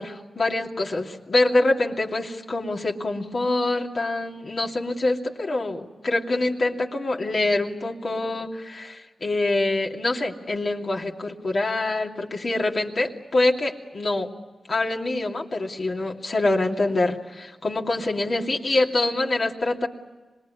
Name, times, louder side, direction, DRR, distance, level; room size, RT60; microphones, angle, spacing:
voice 1, 0.0-14.3 14.7-19.9, left 2 dB, 55° left, 0 dB, 2.7 m, -25 dB
26.5 x 20.5 x 9.8 m, 1.2 s
supercardioid pair, 45°, 0 cm